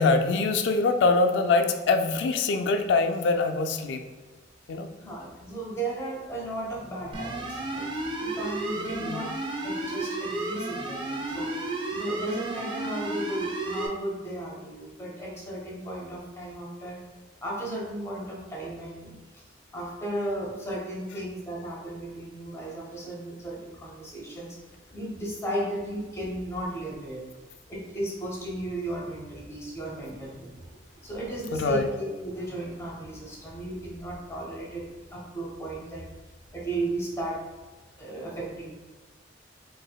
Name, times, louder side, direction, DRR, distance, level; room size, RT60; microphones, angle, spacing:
voice 1, 0.0-4.0 4.7-4.9 8.8-9.2 31.5-31.8, left 3 dB, 70° left, 6 dB, 0.3 m, -24 dB
voice 2, 5.0-9.3 9.6-11.5 11.9-17.0 17.4-19.4 19.7-24.6 24.9-27.2 27.7-34.9 35.1-36.0 36.5-37.4 38.0-38.7, right 1 dB, 15° left, -3 dB, 0.8 m, -35 dB
sound 1, 7.1-13.9, right 2 dB, 25° right, 0.4 m, -32 dB
4.1 x 2.5 x 2.2 m, 1.3 s
head